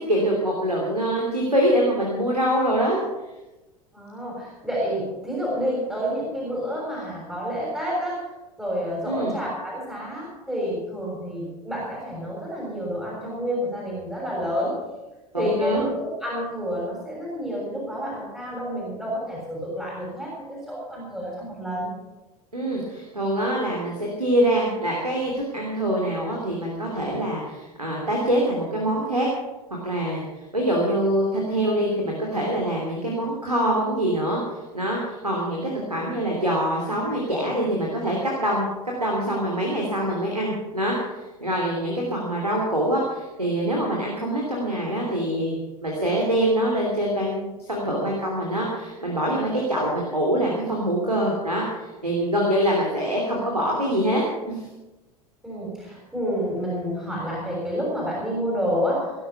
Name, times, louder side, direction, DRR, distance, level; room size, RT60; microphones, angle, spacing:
voice 1, 0.1-3.0 9.0-9.3 15.3-15.8 22.5-29.3 29.8-38.7 39.0-45.5 45.8-54.7, right 1 dB, 85° right, -2 dB, 3.0 m, -24 dB
voice 2, 3.9-8.3 8.6-14.8 15.4-21.9 55.4-59.3, equal, 5° right, -5 dB, 6.5 m, -29 dB
18.5 x 11.5 x 5.8 m, 1.1 s
figure-of-eight pair, 80°, 19 cm